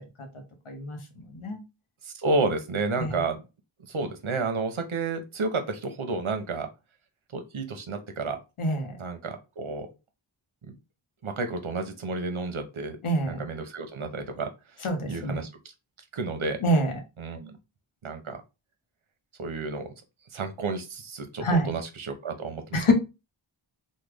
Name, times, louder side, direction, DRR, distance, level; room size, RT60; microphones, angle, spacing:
voice 1, 0.7-1.6 3.0-3.2 8.6-9.0 13.0-13.4 14.8-15.4 16.6-16.9 21.4-21.7 22.7-22.9, equal, 85° left, 5 dB, 0.9 m, -26 dB
voice 2, 2.0-3.4 3.9-6.7 7.3-8.4 9.0-9.9 11.2-13.0 13.3-14.5 15.1-15.5 16.1-16.6 17.2-17.6 18.0-18.4 19.4-19.9 20.3-22.8, right 3 dB, 75° right, 6 dB, 0.8 m, -31 dB
3.1 x 2.2 x 3.4 m, 0.27 s
wide cardioid pair, 50°, 49 cm